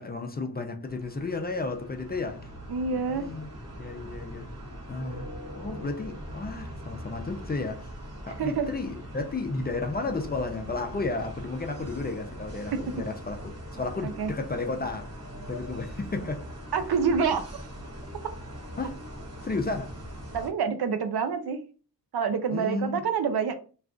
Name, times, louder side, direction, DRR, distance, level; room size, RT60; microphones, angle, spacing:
voice 1, 0.0-2.4 3.1-3.5 3.8-4.5 4.9-7.9 8.3-15.1 15.5-16.5 18.8-19.0 19.4-19.9 22.5-23.0, left 3 dB, 25° left, 0.4 m, -33 dB
sound 1, 0.8-20.5, equal, 40° right, 0.9 m, -41 dB
voice 2, 2.7-3.3 8.4-8.7 12.7-12.8 14.0-14.3 16.7-17.5 20.3-21.6 22.1-23.5, right 6 dB, 75° right, 0.6 m, -27 dB
2.4 x 2.3 x 3.6 m
wide cardioid pair, 110°, 39 cm